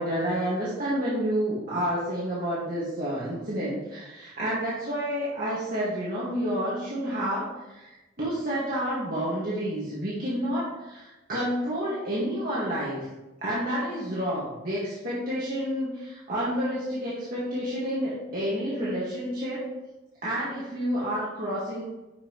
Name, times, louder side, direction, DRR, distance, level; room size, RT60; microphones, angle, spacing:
voice 1, 0.0-13.1 13.4-19.7 20.2-21.8, equal, 50° right, -9 dB, 1.8 m, -29 dB
9.7 x 5.7 x 3.1 m, 1.1 s
head